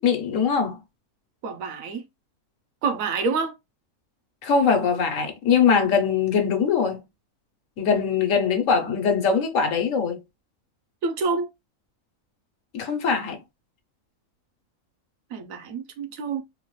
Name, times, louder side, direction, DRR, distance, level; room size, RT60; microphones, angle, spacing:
voice 1, 0.0-0.8 4.4-7.0 7.8-10.2 12.7-13.4, left 6 dB, 65° left, 1.2 m, -22 dB
voice 2, 1.4-2.0 2.8-3.5 11.0-11.5 15.3-16.4, right 4 dB, 70° right, 1.1 m, -27 dB
3.9 x 2.4 x 3.1 m
omnidirectional pair, 1.5 m